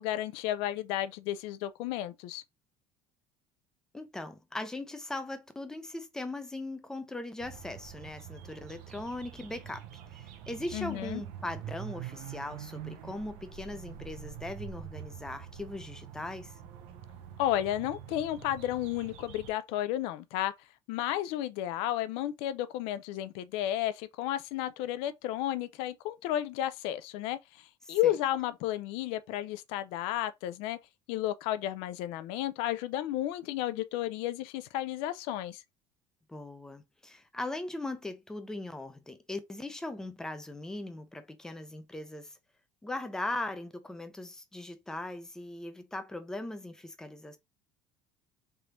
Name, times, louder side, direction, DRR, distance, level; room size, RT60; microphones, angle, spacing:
voice 1, 0.0-2.4 10.7-11.2 17.4-20.5 20.9-27.4 27.9-30.8 31.1-35.6, left 13 dB, 80° left, 0.4 m, -32 dB
voice 2, 3.9-9.9 10.1-16.5 27.8-28.2 36.3-42.4 42.8-47.4, left 2 dB, 5° left, 0.4 m, -39 dB
sound 1, 7.4-19.5, right 9 dB, 85° right, 0.6 m, -45 dB
3.3 x 2.5 x 2.9 m
cardioid pair, 170°, 10 cm